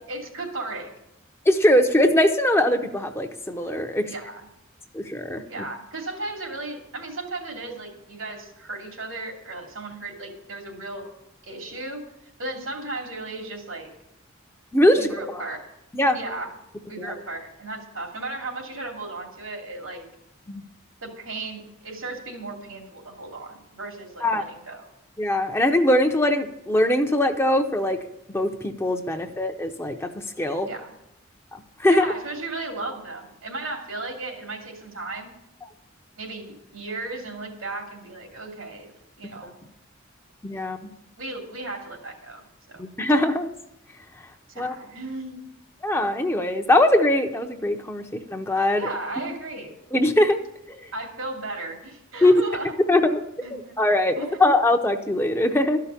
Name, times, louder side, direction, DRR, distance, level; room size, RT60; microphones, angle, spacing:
voice 1, 0.1-0.9 4.0-4.5 5.5-11.1 11.4-12.0 12.4-13.9 14.9-15.7 16.1-16.5 16.9-20.1 21.0-24.9 30.6-30.9 31.8-35.3 36.2-38.9 39.2-39.6 41.2-42.8 44.5-45.4 48.8-49.7 50.9-53.1 53.4-53.8 54.2-54.4, right 2 dB, 90° right, 2 dB, 2.7 m, -35 dB
voice 2, 1.5-4.1 4.9-5.6 14.7-15.1 15.9-16.2 17.0-17.1 20.5-20.6 24.2-24.4 25.2-28.0 28.3-30.7 31.5-32.0 39.4-39.5 40.4-40.9 42.8-43.5 44.6-44.7 45.8-48.9 49.9-50.4 50.8-50.9 52.2-52.4 52.9-55.8, left 1 dB, 10° left, 5 dB, 0.7 m, -21 dB
13.0 x 5.8 x 8.2 m, 0.84 s
head